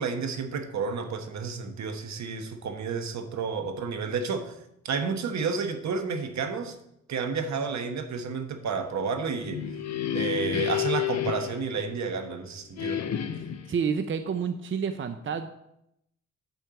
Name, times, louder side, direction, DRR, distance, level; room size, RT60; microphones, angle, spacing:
voice 1, 0.0-4.5 4.8-6.7 7.1-9.6 10.1-13.0, right 5 dB, 70° right, 7 dB, 1.2 m, -31 dB
sound 1, 9.2-12.3 12.8-13.7, left 11 dB, 65° left, 0.8 m, -31 dB
voice 2, 13.3-15.5, right 6 dB, 45° right, 8 dB, 0.6 m, -30 dB
9.3 x 4.5 x 6.9 m, 0.81 s
cardioid pair, 90°, 29 cm